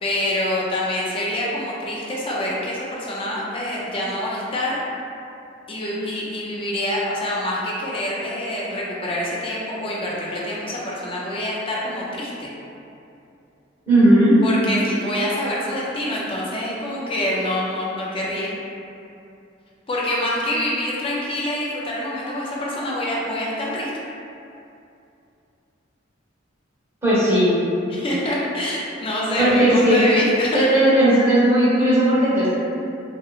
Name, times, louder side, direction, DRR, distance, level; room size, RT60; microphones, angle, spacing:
voice 1, 0.0-4.8 5.7-12.5 14.4-18.5 19.9-23.9 27.9-30.6, left 1 dB, 30° left, -5 dB, 0.4 m, -26 dB
voice 2, 13.9-14.3 27.0-27.5 29.4-30.0 30.5-32.5, right 1 dB, 15° right, -12 dB, 1.0 m, -16 dB
2.7 x 2.4 x 2.3 m, 2.6 s
head